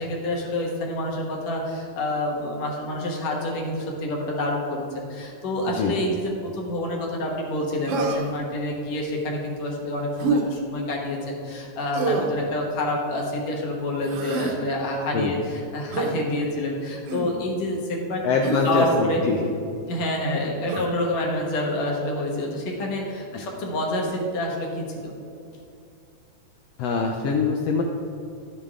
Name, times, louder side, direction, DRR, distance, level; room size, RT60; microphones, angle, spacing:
voice 1, 0.0-18.2 18.6-19.2 19.9-25.1, left 1 dB, 65° left, -1 dB, 2.4 m, -28 dB
Human voice, 7.9-8.4 10.2-10.5 11.9-12.4 14.0-14.6 15.9-16.1 17.1-17.4 18.4-19.0 20.7-20.9, right 3 dB, 70° right, 1.5 m, -27 dB
voice 2, 18.2-19.4 26.8-27.8, left 4 dB, 85° left, 2 dB, 1.4 m, -23 dB
12.0 x 7.2 x 3.7 m, 2.5 s
omnidirectional pair, 3.7 m